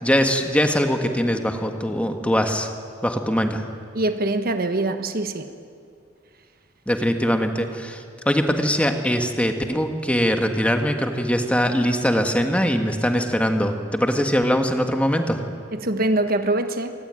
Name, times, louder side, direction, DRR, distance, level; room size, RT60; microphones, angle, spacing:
voice 1, 0.0-2.7 3.0-3.6 6.9-15.4, equal, 5° left, 5 dB, 1.7 m, -22 dB
voice 2, 3.9-5.5 15.7-16.9, right 2 dB, 50° right, 8 dB, 1.2 m, -23 dB
26.5 x 19.5 x 9.1 m, 2.3 s
head